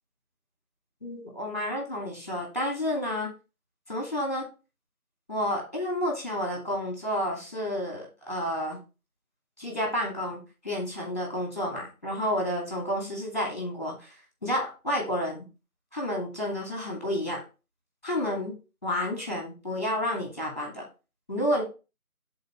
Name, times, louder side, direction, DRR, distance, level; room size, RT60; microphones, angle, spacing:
voice 1, 1.0-3.3 3.9-4.5 5.3-8.8 9.6-14.1 14.4-15.5 15.9-17.4 18.0-18.5 18.8-20.8 21.3-21.6, left 1 dB, 30° left, -1 dB, 2.3 m, -30 dB
6.3 x 4.1 x 4.3 m, 0.31 s
figure-of-eight pair, 175°, 44 cm